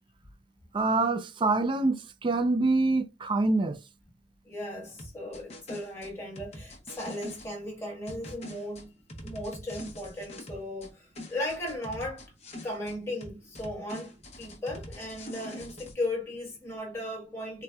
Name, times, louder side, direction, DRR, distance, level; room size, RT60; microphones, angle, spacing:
voice 1, 0.7-3.8, right 3 dB, 25° right, 0.3 m, -25 dB
voice 2, 4.4-12.2 12.6-17.6, left 1 dB, 15° left, 1.4 m, -36 dB
sound 1, 5.0-7.5 8.1-10.9 11.2-13.0 13.2-15.9, left 1 dB, 35° left, 0.8 m, -44 dB
4.1 x 2.2 x 2.3 m
head